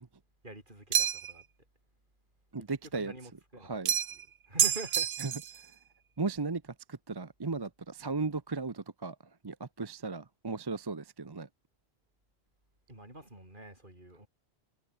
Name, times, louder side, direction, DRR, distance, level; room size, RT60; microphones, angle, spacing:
voice 1, 0.4-1.4 3.0-3.8 4.5-5.1 12.9-14.3, right 1 dB, 50° right, 6.7 m, -46 dB
sound 1, 0.9-1.4 3.9-4.2 4.6-5.6, right 9 dB, 70° right, 1.0 m, -28 dB
voice 2, 2.5-3.1 3.6-3.9 5.2-5.3 6.2-9.2 9.4-11.5, right 4 dB, 25° right, 0.7 m, -36 dB
omnidirectional pair, 1.1 m